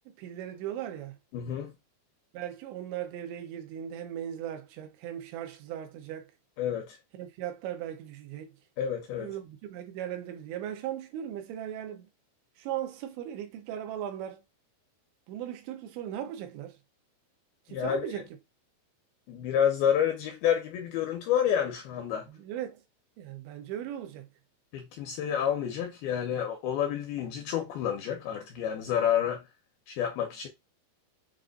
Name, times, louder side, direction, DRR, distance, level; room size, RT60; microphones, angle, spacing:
voice 1, 0.1-1.2 2.3-6.3 7.1-8.5 9.1-12.1 12.6-14.4 15.3-16.8 17.7-18.2 22.3-22.8 23.2-24.3, right 10 dB, 90° right, 3.2 m, -38 dB
voice 2, 1.3-1.7 6.6-7.0 8.8-9.3 17.7-18.0 19.3-22.3 24.7-29.5 29.9-30.5, left 9 dB, 80° left, 2.2 m, -29 dB
7.2 x 2.5 x 2.5 m
omnidirectional pair, 5.0 m